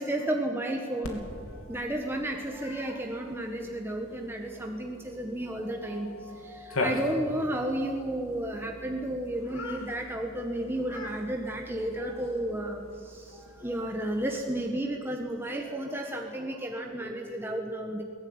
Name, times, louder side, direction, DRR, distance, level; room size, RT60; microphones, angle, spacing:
voice 1, 0.0-18.0, right 1 dB, 10° right, 2 dB, 1.6 m, -32 dB
Cat, 1.0-14.7, left 2 dB, 90° left, 3.2 m, -41 dB
23.0 x 18.0 x 9.7 m, 2.3 s
head